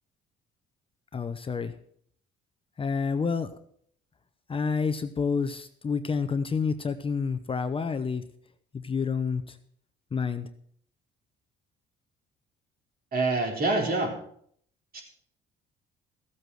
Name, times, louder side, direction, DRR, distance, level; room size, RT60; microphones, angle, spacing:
voice 1, 1.1-1.7 2.8-3.6 4.5-8.2 8.7-9.6 10.1-10.5, left 5 dB, 25° left, 10 dB, 0.8 m, -29 dB
voice 2, 13.1-14.2 14.9-15.0, right 2 dB, 50° right, 2 dB, 4.1 m, -26 dB
14.5 x 8.2 x 6.3 m, 0.64 s
cardioid pair, 105°, 20 cm